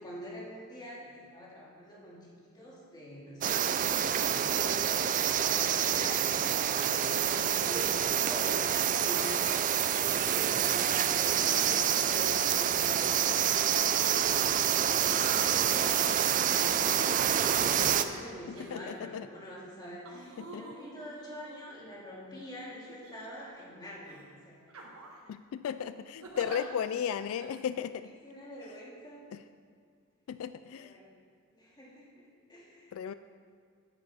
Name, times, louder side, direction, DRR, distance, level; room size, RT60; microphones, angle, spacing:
voice 1, 0.0-3.6 3.9-4.9 5.4-6.3 6.5-16.3 16.6-24.7 28.2-29.3 30.7-31.1 31.5-32.1 32.5-32.9, equal, 20° left, -5 dB, 2.3 m, -45 dB
sound 1, 3.4-18.0, right 9 dB, 40° right, 0.4 m, -27 dB
sound 2, 18.5-19.1 20.0-22.1 22.9-23.6 24.0-24.2 24.7-25.3 26.2-26.6 27.4-27.5, right 2 dB, 90° right, 1.4 m, -48 dB
voice 2, 18.7-19.3 20.4-20.6 25.3-28.0 29.3-29.4 30.3-30.9 32.9-33.1, left 8 dB, 70° left, 12 dB, 0.3 m, -35 dB
9.5 x 9.1 x 4.2 m, 2.2 s
head